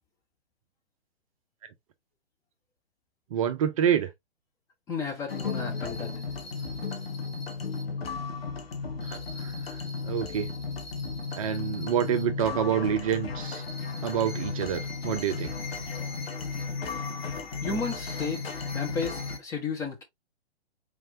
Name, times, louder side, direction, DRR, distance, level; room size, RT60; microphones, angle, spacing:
voice 1, 3.3-4.1 9.1-9.5 10.0-10.5 11.4-13.6 14.0-15.5, right 9 dB, 30° right, 0.6 m, -27 dB
voice 2, 4.9-6.1 17.6-18.4 18.7-20.0, left 4 dB, 10° left, 0.6 m, -33 dB
sound 1, 5.3-19.4, left 4 dB, 65° left, 1.1 m, -34 dB
4.3 x 3.2 x 2.7 m
figure-of-eight pair, 120°, 33 cm